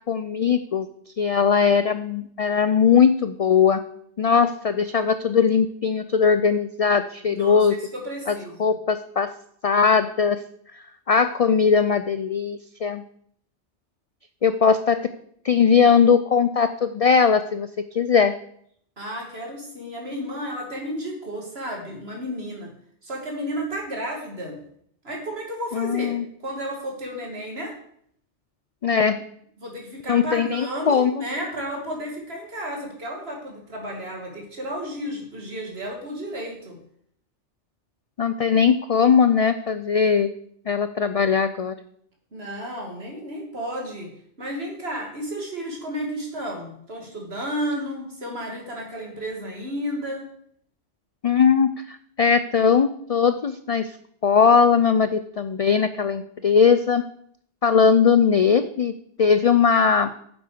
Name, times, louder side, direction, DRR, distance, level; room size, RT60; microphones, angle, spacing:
voice 1, 0.1-0.9 1.2-3.8 4.2-7.8 8.3-8.4 8.6-9.3 9.6-10.4 10.7-13.0 14.4-15.1 15.4-18.3 25.7-26.2 28.8-29.2 30.1-31.2 38.2-40.3 40.7-41.8 51.2-54.0 54.2-57.0 57.6-60.1, left 6 dB, 70° left, 11 dB, 0.3 m, -20 dB
voice 2, 7.3-7.6 7.9-8.7 19.0-22.7 23.0-24.6 25.0-27.7 29.6-36.8 42.3-44.1 44.4-50.3, equal, 60° right, 0 dB, 2.7 m, -32 dB
9.5 x 7.4 x 5.1 m, 0.66 s
omnidirectional pair, 1.2 m